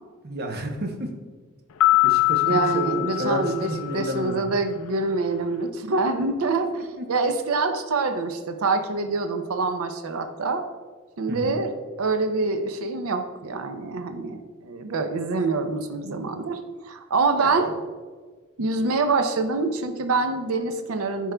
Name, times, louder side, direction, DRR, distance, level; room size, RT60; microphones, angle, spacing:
voice 1, 0.2-1.1 2.0-4.4 6.6-7.0 11.3-11.6 17.3-17.6, equal, 50° right, 4 dB, 0.8 m, -31 dB
sound 1, 1.8-4.3, left 18 dB, 70° left, 0.3 m, -23 dB
voice 2, 2.4-10.7 11.2-17.7 18.6-21.3, right 3 dB, 75° right, 7 dB, 0.5 m, -25 dB
10.0 x 4.6 x 2.2 m, 1.4 s
head